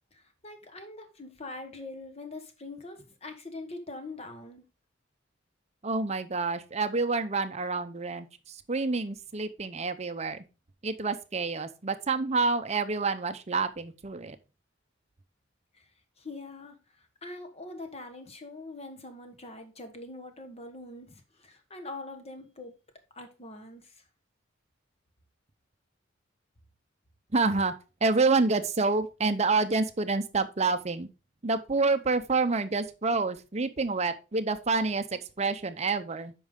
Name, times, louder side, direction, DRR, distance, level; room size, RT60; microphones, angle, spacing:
voice 1, 0.1-4.6 15.7-15.9 16.2-22.7 23.1-24.0, left 2 dB, 30° left, 1.3 m, -43 dB
voice 2, 5.8-10.4 10.8-14.4 27.3-27.7 28.0-31.1 31.4-36.3, right 3 dB, 35° right, 0.7 m, -28 dB
8.5 x 5.4 x 3.7 m
head